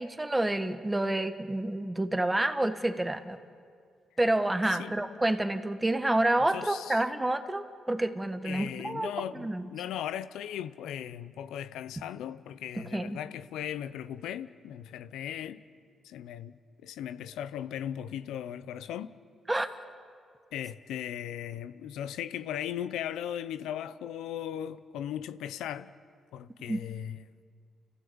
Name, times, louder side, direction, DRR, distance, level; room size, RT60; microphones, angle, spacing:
voice 1, 0.0-3.4 4.2-9.6 12.7-13.2 19.5-19.7 26.7-26.8, right 1 dB, 15° right, 1.6 m, -29 dB
voice 2, 6.5-7.0 8.4-15.6 16.0-16.5 16.8-19.2 20.5-25.9 26.3-27.2, left 10 dB, 90° left, 0.7 m, -37 dB
29.0 x 15.5 x 8.8 m
cardioid pair, 80°, 0 cm